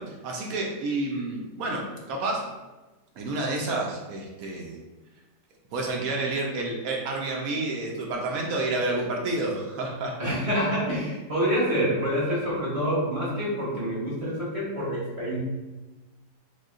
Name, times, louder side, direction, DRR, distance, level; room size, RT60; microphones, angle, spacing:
voice 1, 0.0-2.5 3.2-4.8 5.7-10.3, right 2 dB, 70° right, 0 dB, 0.8 m, -29 dB
voice 2, 10.2-15.4, equal, 25° right, -8 dB, 0.7 m, -27 dB
6.1 x 2.2 x 2.5 m, 1.1 s
omnidirectional pair, 2.0 m